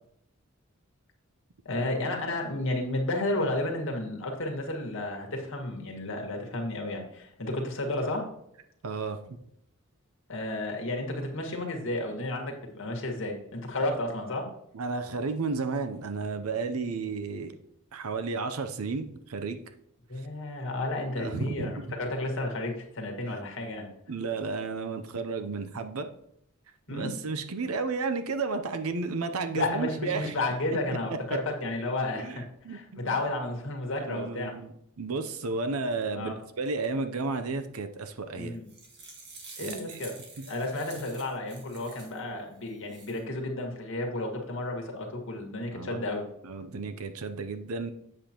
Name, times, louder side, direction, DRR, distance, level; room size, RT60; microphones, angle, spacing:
voice 1, 1.7-8.3 10.3-14.5 20.1-21.7 22.0-23.9 26.9-27.1 29.5-34.5 36.1-36.4 38.4-38.6 39.6-40.1 40.5-46.2, left 2 dB, 65° left, 1 dB, 1.8 m, -32 dB
voice 2, 8.8-9.4 14.7-17.5 17.9-19.6 21.2-21.9 24.1-26.1 26.9-30.3 32.2-33.2 34.0-38.6 39.6-40.0 45.7-46.0 46.4-47.9, right 4 dB, 85° right, 9 dB, 0.7 m, -33 dB
sound 1, 38.4-42.2 42.7-43.2, right 4 dB, 55° right, 1.8 m, -47 dB
8.5 x 7.6 x 3.0 m, 0.75 s
head